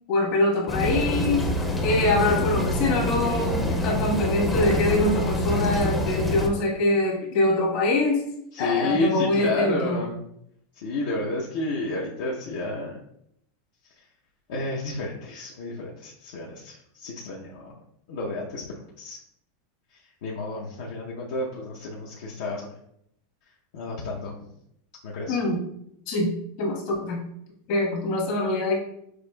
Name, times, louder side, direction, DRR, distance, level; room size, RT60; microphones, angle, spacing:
voice 1, 0.1-1.5 1.8-8.2 8.6-10.1 25.3-25.6 26.1-26.3 26.6-27.2 27.7-28.8, left 2 dB, 55° left, -1 dB, 1.3 m, -24 dB
sound 1, 0.7-6.5, left 1 dB, 10° left, 0.6 m, -26 dB
voice 2, 8.5-10.2 10.8-13.0 14.5-17.7 18.1-18.6 19.0-19.2 20.2-22.7 23.7-24.3 25.0-25.4, left 2 dB, 75° left, -4 dB, 0.7 m, -30 dB
6.1 x 2.5 x 2.3 m, 0.74 s
supercardioid pair, 125°, 0 cm